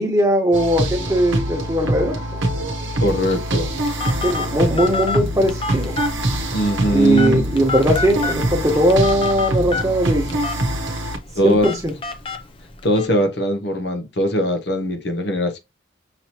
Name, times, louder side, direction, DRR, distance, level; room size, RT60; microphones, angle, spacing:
voice 1, 0.0-2.1 4.2-6.0 6.9-10.4 11.4-11.9, equal, 15° right, 1.0 m, -19 dB
sound 1, 0.5-11.2, right 1 dB, 70° right, 0.8 m, -24 dB
voice 2, 3.0-3.7 6.5-7.4 11.4-11.7 12.8-15.6, equal, 55° left, 0.7 m, -20 dB
Telephone, 3.2-13.1, left 4 dB, 25° left, 0.5 m, -30 dB
5.9 x 2.7 x 2.9 m
head